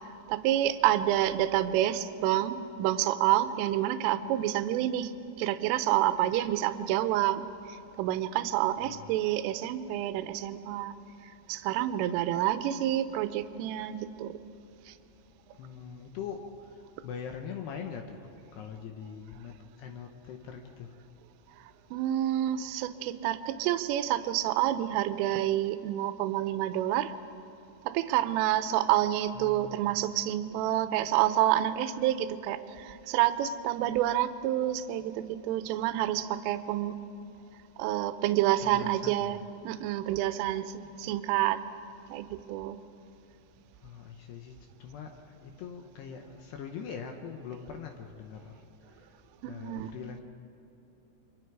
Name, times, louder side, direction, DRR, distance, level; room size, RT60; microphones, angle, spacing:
voice 1, 0.3-5.1 5.4-7.4 8.0-10.9 11.5-14.3 14.9-15.0 21.9-27.1 27.8-37.0 37.8-41.6 42.1-42.8 49.4-49.9, right 13 dB, 80° right, 11 dB, 3.3 m, -28 dB
voice 2, 8.8-9.3 15.6-16.4 17.0-19.5 19.8-20.9 29.3-30.0 38.6-39.4 43.8-48.5 49.5-50.2, left 7 dB, 75° left, 4 dB, 2.6 m, -42 dB
29.5 x 24.5 x 4.8 m, 3.0 s
omnidirectional pair, 5.9 m